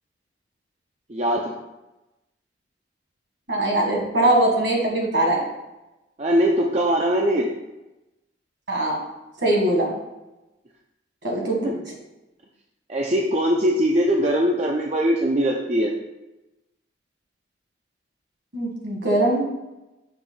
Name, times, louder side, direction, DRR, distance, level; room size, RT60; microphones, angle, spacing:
voice 1, 1.1-1.5 6.2-7.5 11.6-11.7 12.9-15.9, equal, 35° right, -1 dB, 0.5 m, -21 dB
voice 2, 3.5-5.4 8.7-9.0 9.4-9.9 11.2-11.7 18.5-19.4, right 1 dB, 65° right, -1 dB, 1.7 m, -21 dB
6.6 x 3.0 x 5.4 m, 1.0 s
head